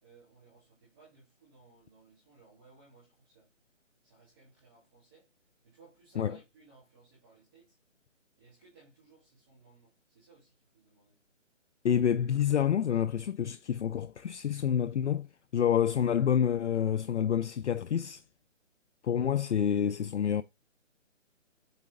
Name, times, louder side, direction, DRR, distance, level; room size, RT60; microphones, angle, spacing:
voice 1, 0.0-3.5 4.0-5.3 5.6-7.8 8.4-11.2, right 4 dB, 20° right, 2.3 m, -61 dB
voice 2, 11.8-15.3 15.5-18.2 19.0-20.4, left 9 dB, 65° left, 0.5 m, -28 dB
8.1 x 4.2 x 3.7 m
hypercardioid pair, 170°, 38 cm